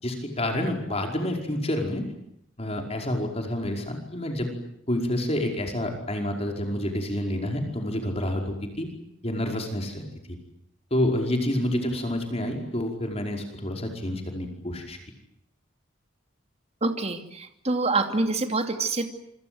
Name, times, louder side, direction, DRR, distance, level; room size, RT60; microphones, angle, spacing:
voice 1, 0.0-2.0 2.6-4.5 4.9-8.9 9.2-10.0 10.3-10.4 10.9-15.0, left 1 dB, 35° left, 3 dB, 5.1 m, -28 dB
voice 2, 16.8-19.1, right 3 dB, 35° right, 6 dB, 2.7 m, -26 dB
28.0 x 26.0 x 7.9 m, 0.76 s
head